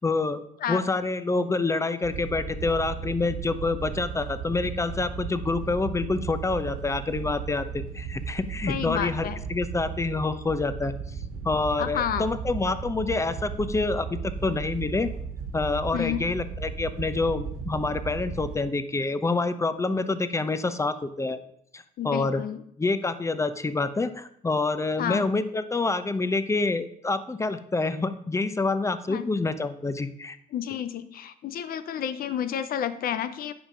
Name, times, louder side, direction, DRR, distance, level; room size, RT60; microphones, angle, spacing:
voice 1, 0.0-0.4 0.7-10.9 11.4-15.1 15.5-21.4 21.7-22.4 22.8-30.4, left 3 dB, 20° left, 12 dB, 0.8 m, -27 dB
Wind / Boat Water vehicle, 2.0-18.5, right 6 dB, 90° right, 1.9 m, -35 dB
voice 2, 8.7-9.4 11.8-12.3 15.9-16.2 22.0-22.6 25.0-25.2 29.1-29.3 30.5-33.5, left 9 dB, 65° left, 12 dB, 0.7 m, -30 dB
9.8 x 5.4 x 5.1 m, 0.70 s
cardioid pair, 80°, 16 cm